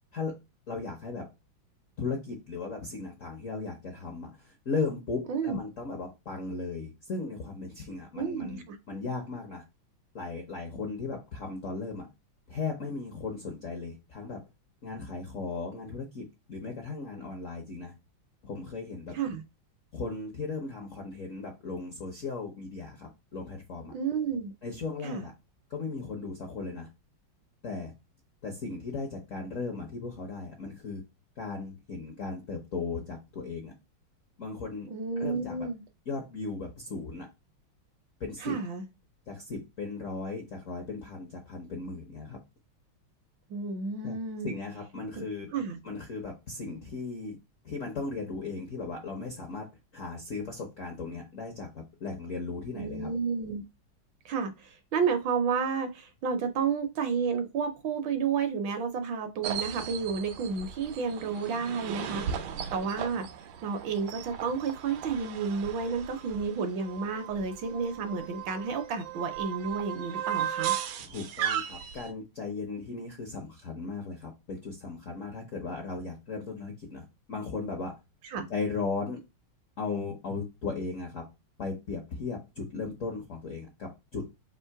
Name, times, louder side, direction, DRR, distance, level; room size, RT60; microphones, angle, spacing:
voice 1, 0.7-1.3 2.0-9.6 10.1-12.1 12.5-14.4 14.8-17.9 18.4-19.2 19.9-23.9 24.6-25.3 25.7-26.9 27.6-27.9 28.4-31.0 31.4-33.7 34.4-34.9 35.2-35.7 36.1-37.3 38.2-38.6 39.3-42.4 44.0-44.2 44.4-45.5 45.8-47.4 47.6-53.1 71.0-77.9 78.5-79.2 79.8-81.3 81.6-84.3, left 4 dB, 65° left, 0.8 m, -37 dB
voice 2, 8.1-8.8 19.1-19.4 23.9-24.5 25.0-25.2 34.9-35.8 38.4-38.8 43.5-44.5 45.2-45.3 45.5-45.8 52.7-53.6 54.2-63.3 63.6-70.7 78.3-78.5, right 5 dB, 70° right, 1.3 m, -31 dB
sound 1, 59.4-72.1, right 9 dB, 90° right, 1.5 m, -36 dB
3.7 x 2.8 x 4.5 m
omnidirectional pair, 2.3 m